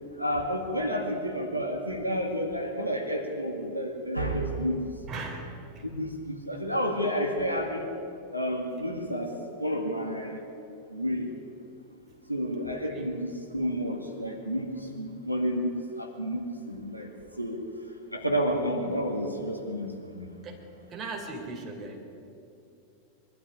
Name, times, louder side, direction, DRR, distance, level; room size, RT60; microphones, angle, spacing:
voice 1, 0.2-4.9 5.8-7.9 8.3-9.3 9.6-10.4 10.9-11.3 12.3-17.6 18.1-20.3, equal, 90° right, 2 dB, 1.9 m, -30 dB
voice 2, 5.1-5.8 12.9-13.2 20.4-22.0, right 3 dB, 30° right, 2 dB, 3.7 m, -39 dB
22.5 x 12.5 x 9.8 m, 2.7 s
figure-of-eight pair, 90°, 0 cm